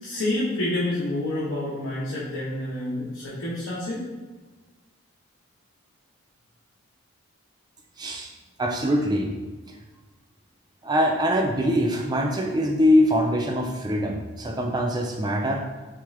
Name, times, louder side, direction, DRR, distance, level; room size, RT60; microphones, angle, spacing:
voice 1, 0.0-4.0, left 1 dB, 75° left, -8 dB, 0.9 m, -28 dB
voice 2, 8.0-8.3 8.6-9.4 10.8-15.6, equal, 20° right, 2 dB, 0.3 m, -23 dB
3.7 x 3.5 x 3.2 m, 1.3 s
head